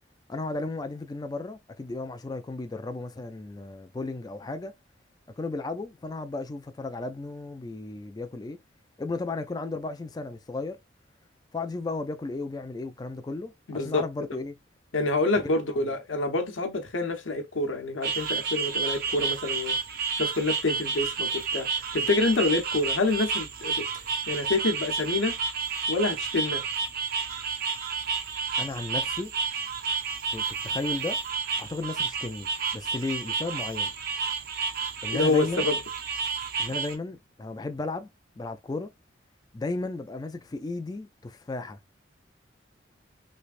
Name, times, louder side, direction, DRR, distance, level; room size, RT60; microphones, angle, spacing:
voice 1, 0.3-4.7 5.4-8.6 9.0-10.8 11.5-14.6 15.7-15.8 28.6-29.3 30.3-31.2 31.6-33.9 35.0-35.7 36.6-38.1 38.4-38.9 39.5-41.8, left 3 dB, 20° left, 0.3 m, -34 dB
voice 2, 13.7-14.0 14.9-19.8 20.2-23.8 24.3-25.3 25.9-26.6 35.1-35.8, left 2 dB, 85° left, 0.8 m, -27 dB
sound 1, 18.0-36.9, right 5 dB, 50° right, 0.6 m, -31 dB
3.3 x 3.2 x 2.4 m
head